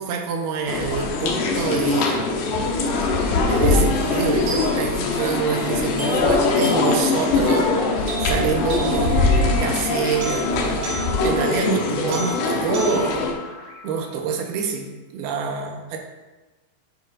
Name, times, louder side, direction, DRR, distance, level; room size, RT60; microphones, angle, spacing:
voice 1, 0.0-2.7 3.3-7.7 8.2-10.8 11.2-13.4 13.8-14.9 15.1-16.0, right 6 dB, 85° right, 2 dB, 2.9 m, -26 dB
sound 1, 0.7-13.3, left 3 dB, 75° left, 2.2 m, -22 dB
sound 2, 4.5-14.5, right 4 dB, 60° right, 1.7 m, -33 dB
9.2 x 7.9 x 2.5 m, 1.2 s
omnidirectional pair, 4.3 m